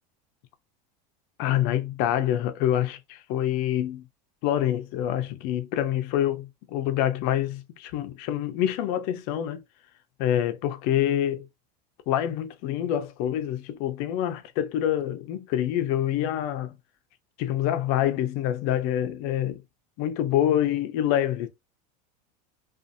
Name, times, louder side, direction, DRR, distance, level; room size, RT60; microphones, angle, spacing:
voice 1, 1.4-4.0 4.4-9.6 10.2-11.4 12.1-16.7 17.4-19.6 20.0-21.5, left 11 dB, 50° left, 0.5 m, -26 dB
2.6 x 2.4 x 2.5 m
supercardioid pair, 145°, 19 cm